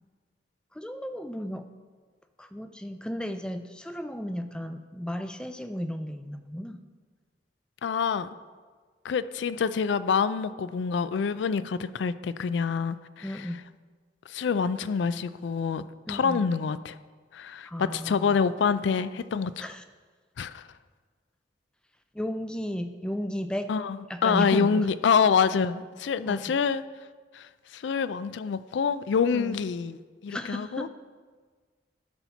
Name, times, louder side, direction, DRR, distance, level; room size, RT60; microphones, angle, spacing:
voice 1, 0.7-1.7 2.4-6.8 13.2-13.6 16.1-16.4 17.7-18.4 19.6-19.8 22.1-23.7 24.1-24.9 26.3-26.6 29.3-29.6 30.3-30.9, equal, 5° left, 8 dB, 0.4 m, -34 dB
voice 2, 7.8-8.3 9.0-13.5 14.3-16.9 17.3-19.7 20.4-20.6 23.7-24.0 24.2-26.8 27.3-27.5 27.7-30.0 30.2-30.9, left 6 dB, 75° left, 14 dB, 0.3 m, -26 dB
13.0 x 4.4 x 5.7 m, 1.5 s
head